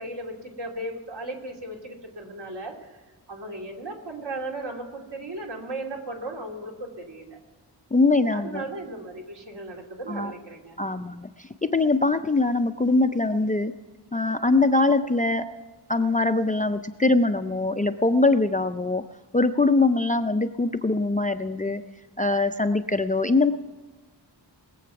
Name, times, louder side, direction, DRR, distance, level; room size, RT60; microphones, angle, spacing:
voice 1, 0.0-3.0 3.3-7.4 8.3-10.8, right 2 dB, 65° right, 0 dB, 2.9 m, -36 dB
voice 2, 7.9-8.7 10.1-10.3 10.8-13.7 14.1-15.5 15.9-19.0 19.3-21.8 22.2-23.5, left 3 dB, 20° left, 9 dB, 0.4 m, -22 dB
20.5 x 7.8 x 5.8 m, 1.4 s
wide cardioid pair, 125°, 44 cm